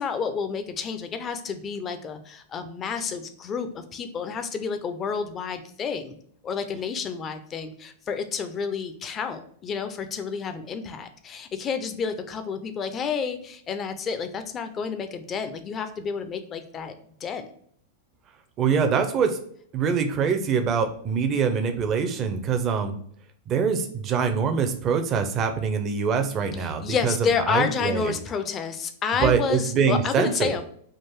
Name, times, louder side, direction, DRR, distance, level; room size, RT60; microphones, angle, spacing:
voice 1, 0.0-6.2 6.4-17.5 26.6-30.6, left 6 dB, 30° left, 9 dB, 0.5 m, -30 dB
voice 2, 18.6-19.4 19.7-23.0 23.5-27.1 27.5-28.1 29.2-30.5, right 6 dB, 35° right, 7 dB, 0.6 m, -24 dB
3.7 x 2.5 x 4.4 m, 0.63 s
hypercardioid pair, 100°, 0 cm